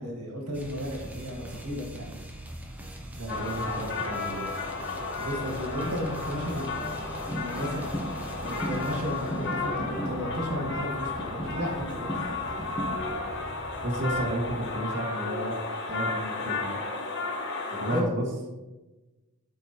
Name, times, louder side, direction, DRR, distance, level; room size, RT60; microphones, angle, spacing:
voice 1, 0.0-2.1 5.2-7.8 8.4-12.1 17.9-18.1, equal, 85° right, -1 dB, 1.8 m, -34 dB
sound 1, 0.5-14.6, right 1 dB, 5° right, 0.7 m, -42 dB
voice 2, 3.2-4.5 13.8-15.6 15.9-16.8 17.7-18.3, right 1 dB, 55° right, -4 dB, 1.6 m, -32 dB
sound 2, 3.3-18.0, left 3 dB, 55° left, 1.2 m, -33 dB
sound 3, 7.3-13.0, equal, 20° left, 0.9 m, -37 dB
12.5 x 4.3 x 2.9 m, 1.1 s
head